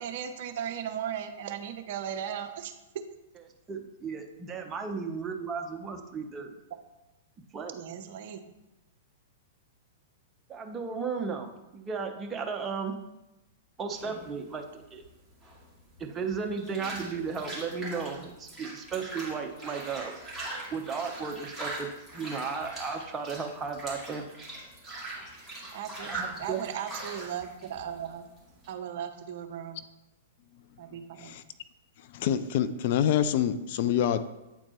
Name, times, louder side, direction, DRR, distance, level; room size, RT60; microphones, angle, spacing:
voice 1, 0.0-2.7 7.7-8.4 25.7-28.2 28.7-29.8 30.8-31.4, right 9 dB, 50° right, 8 dB, 0.6 m, -37 dB
voice 2, 3.7-6.5 7.5-7.8 10.5-13.0 13.8-15.0 16.0-20.1 20.7-21.9 22.1-24.3 26.1-26.6, right 5 dB, 20° right, 3 dB, 0.8 m, -35 dB
sound 1, 13.9-28.7, right 2 dB, ahead, 2.3 m, -42 dB
voice 3, 32.1-34.2, left 9 dB, 50° left, 12 dB, 0.3 m, -26 dB
8.7 x 4.3 x 2.9 m, 0.98 s
figure-of-eight pair, 105°, 0 cm